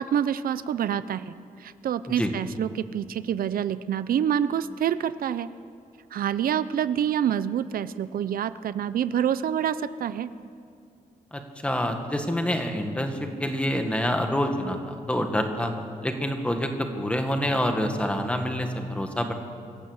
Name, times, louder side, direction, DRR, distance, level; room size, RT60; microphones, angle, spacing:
voice 1, 0.0-5.5 6.1-10.3, right 9 dB, 85° right, 14 dB, 0.6 m, -27 dB
voice 2, 11.3-15.7 16.0-19.3, equal, 10° left, 5 dB, 1.6 m, -27 dB
25.5 x 15.0 x 8.0 m, 2.3 s
wide cardioid pair, 175°, 15 cm